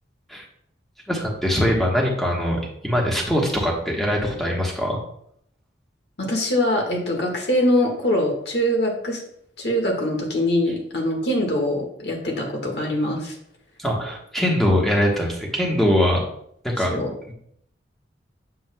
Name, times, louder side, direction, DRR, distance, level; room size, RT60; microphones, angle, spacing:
voice 1, 1.1-5.0 13.8-16.2 16.6-16.9 17.3-17.4, equal, ahead, -2 dB, 1.2 m, -22 dB
voice 2, 6.2-9.2 9.6-13.3 16.9-17.1, left 1 dB, 60° left, 1 dB, 1.6 m, -23 dB
7.6 x 6.8 x 2.2 m, 0.69 s
head